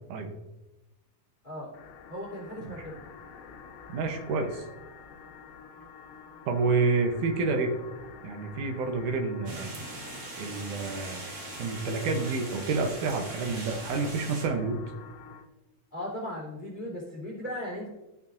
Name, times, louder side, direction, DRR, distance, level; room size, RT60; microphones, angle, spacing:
voice 1, 1.4-1.8 2.1-3.0 15.9-17.9, left 1 dB, 15° left, -4 dB, 2.8 m, -37 dB
sound 1, 1.7-15.5, left 6 dB, 80° left, 2.3 m, -48 dB
voice 2, 3.9-4.7 6.5-7.7 8.2-9.7 10.4-11.3 11.6-14.8, right 4 dB, 85° right, 4 dB, 2.4 m, -29 dB
sound 2, 9.5-14.5, right 3 dB, 50° right, 1.1 m, -41 dB
14.0 x 5.7 x 2.6 m, 0.98 s
omnidirectional pair, 3.5 m